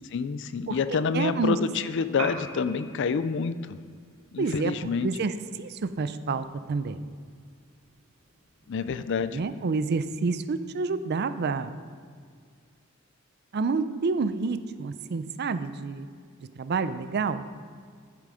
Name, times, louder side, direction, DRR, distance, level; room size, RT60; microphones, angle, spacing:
voice 1, 0.1-3.8 4.3-5.1 8.7-9.4, left 5 dB, 60° left, 13 dB, 0.4 m, -28 dB
voice 2, 1.1-1.6 4.4-4.7 5.0-7.1 9.3-11.8 13.5-16.1 16.4-17.4, right 4 dB, 50° right, 12 dB, 0.4 m, -28 dB
Piano, 2.1-10.1, right 2 dB, 85° right, 1.4 m, -46 dB
9.1 x 7.5 x 5.0 m, 2.1 s
head